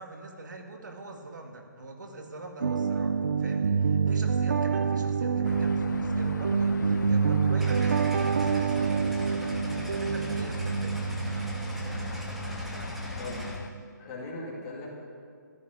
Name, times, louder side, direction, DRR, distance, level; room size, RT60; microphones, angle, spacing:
voice 1, 0.0-13.2, right 2 dB, 70° right, 3 dB, 2.1 m, -45 dB
sound 1, 2.6-13.8, right 5 dB, 50° right, 0.6 m, -27 dB
sound 2, 5.4-13.7, left 5 dB, 70° left, 0.5 m, -40 dB
sound 3, 7.6-13.6, right 1 dB, ahead, 0.5 m, -42 dB
voice 2, 14.0-14.9, left 2 dB, 15° left, -4 dB, 1.9 m, -38 dB
14.0 x 7.5 x 9.9 m, 2.1 s
hypercardioid pair, 180°, 10 cm